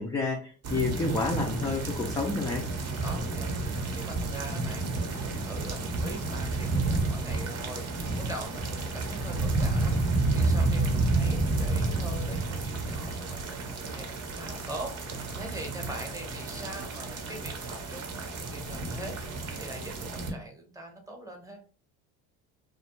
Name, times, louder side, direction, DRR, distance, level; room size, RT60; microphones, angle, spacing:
voice 1, 0.0-2.6, left 3 dB, 10° left, 0 dB, 0.3 m, -29 dB
sound 1, 0.6-20.3, right 3 dB, 35° right, 0.7 m, -30 dB
voice 2, 3.0-3.5 3.9-10.0 10.3-21.6, right 1 dB, 10° right, 2 dB, 0.8 m, -43 dB
2.3 x 2.0 x 2.9 m, 0.40 s
hypercardioid pair, 75°, 44 cm